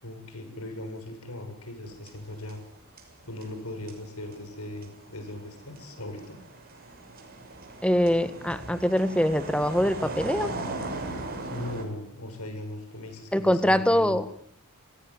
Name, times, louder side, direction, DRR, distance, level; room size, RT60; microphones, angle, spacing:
voice 1, 0.0-2.6 3.3-6.4 11.5-14.2, left 1 dB, 80° left, 6 dB, 7.0 m, -39 dB
sound 1, 1.8-2.7 3.0-11.8, right 2 dB, 45° right, 6.4 m, -38 dB
voice 2, 7.8-10.5 13.3-14.2, equal, 5° left, 11 dB, 1.6 m, -23 dB
27.0 x 18.0 x 9.8 m, 0.67 s
head